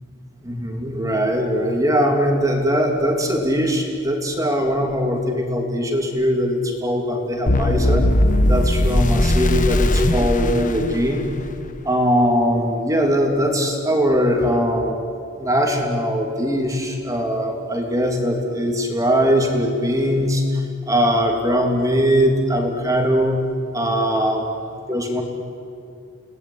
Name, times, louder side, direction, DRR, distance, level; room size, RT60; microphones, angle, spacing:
voice 1, 0.4-8.1 8.5-11.3 11.8-15.0 15.4-23.4 23.7-24.5 24.9-25.2, equal, 15° right, 2 dB, 3.1 m, -21 dB
sound 1, 7.5-11.6, left 1 dB, 40° left, 1.2 m, -19 dB
30.0 x 19.5 x 9.9 m, 2.5 s
head